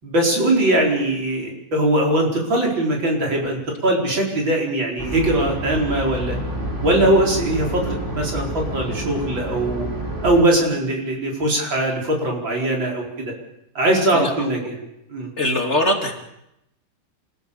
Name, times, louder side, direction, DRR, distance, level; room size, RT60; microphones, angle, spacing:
voice 1, 0.0-6.4 6.8-9.9 10.2-13.3 13.8-14.8 15.1-15.3, right 1 dB, 85° right, 0 dB, 5.5 m, -21 dB
sound 1, 5.0-10.4, right 1 dB, 25° right, 4.4 m, -28 dB
voice 2, 14.1-14.7 15.4-16.1, left 1 dB, 35° left, 2 dB, 3.0 m, -22 dB
28.0 x 16.5 x 7.0 m, 0.84 s
omnidirectional pair, 2.0 m